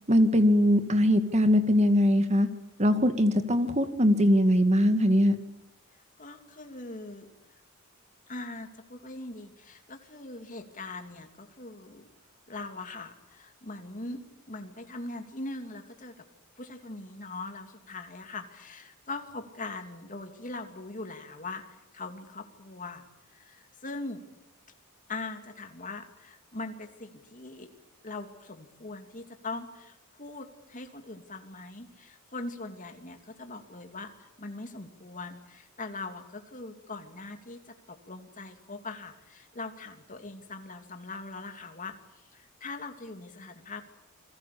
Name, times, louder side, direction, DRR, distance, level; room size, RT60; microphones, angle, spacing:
voice 1, 0.1-2.5 2.8-5.4, equal, 30° right, 9 dB, 2.1 m, -21 dB
voice 2, 6.2-7.3 8.3-12.1 12.5-16.2 16.6-23.0 23.3-24.2 25.1-27.7 28.0-43.8, left 3 dB, 35° left, 5 dB, 2.9 m, -41 dB
29.0 x 22.0 x 8.6 m, 0.88 s
head